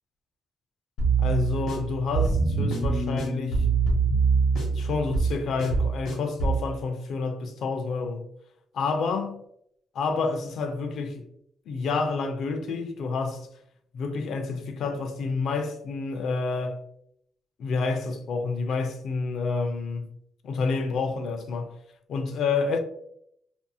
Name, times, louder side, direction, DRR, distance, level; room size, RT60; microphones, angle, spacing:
sound 1, 1.0-6.6, right 4 dB, 90° left, 0.9 m, -24 dB
voice 1, 1.2-3.7 4.7-8.2 8.7-9.4 9.9-11.3 11.7-13.5 13.9-16.8 17.6-20.1 20.4-21.7 22.1-22.8, left 4 dB, 70° left, 0.4 m, -29 dB
2.6 x 2.6 x 2.3 m
cardioid pair, 125°, 0 cm